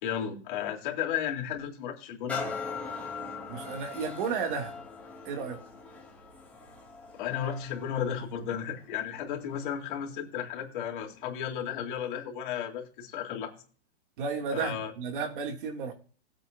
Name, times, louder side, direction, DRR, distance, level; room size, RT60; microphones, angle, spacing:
voice 1, 0.0-2.4 7.1-13.5 14.5-14.9, left 9 dB, 50° left, 1 dB, 3.8 m, -34 dB
sound 1, 2.3-9.9 10.5-10.6, left 4 dB, 5° left, 3.2 m, -41 dB
voice 2, 3.5-4.7 5.2-5.6 14.2-15.9, right 5 dB, 50° right, 3 dB, 2.9 m, -33 dB
17.0 x 8.8 x 2.8 m, 0.40 s
hypercardioid pair, 150°, 32 cm